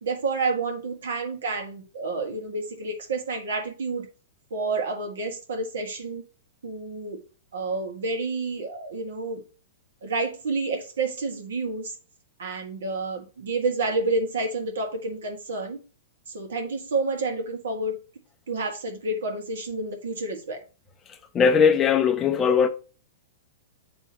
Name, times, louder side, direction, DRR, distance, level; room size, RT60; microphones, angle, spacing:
voice 1, 0.0-4.1 4.5-6.2 6.6-7.2 7.5-9.4 10.0-11.9 12.4-15.8 16.3-18.0 18.5-20.6, right 3 dB, 85° right, 1.8 m, -29 dB
voice 2, 21.3-22.7, left 6 dB, 20° left, 0.6 m, -19 dB
9.9 x 3.4 x 2.9 m
hypercardioid pair, 155°, 0 cm